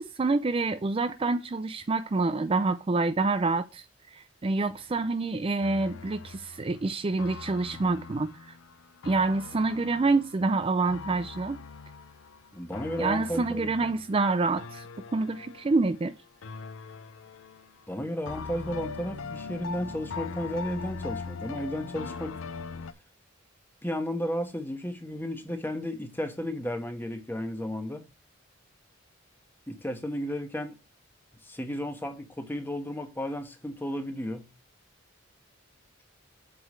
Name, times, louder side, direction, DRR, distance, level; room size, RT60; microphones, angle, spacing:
voice 1, 0.0-3.9 4.1-8.5 9.0-11.6 13.0-14.8 15.1-16.1, right 3 dB, 30° right, 0.4 m, -27 dB
sound 1, 5.6-16.1 16.4-17.8 18.3-22.9, left 4 dB, 80° left, 0.6 m, -41 dB
voice 2, 12.5-13.9 17.9-22.4 23.8-28.0 29.7-30.8 31.4-34.5, equal, 10° left, 1.2 m, -33 dB
7.9 x 3.9 x 6.4 m
head